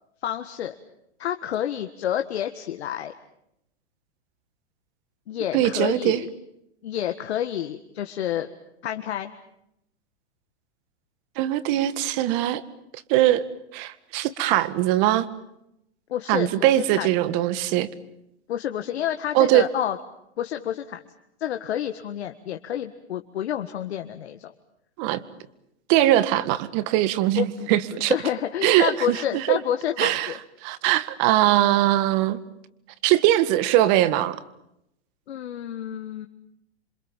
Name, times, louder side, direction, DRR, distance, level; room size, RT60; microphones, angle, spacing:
voice 1, 0.2-0.7 1.2-3.1 5.3-6.3 6.8-8.5 8.8-9.3 16.1-17.1 18.5-20.0 20.4-21.0 21.4-24.5 27.4-27.7 28.1-30.3 35.3-36.3, left 10 dB, 70° left, 6 dB, 1.7 m, -29 dB
voice 2, 5.5-6.2 11.4-12.6 13.1-13.4 13.7-15.3 16.3-17.9 19.3-19.7 25.0-25.2 25.9-28.1 28.6-29.6 30.0-30.3 30.6-32.4 33.0-34.4, right 14 dB, 45° right, 15 dB, 1.9 m, -21 dB
27.5 x 26.0 x 7.3 m, 0.81 s
hypercardioid pair, 130°, 33 cm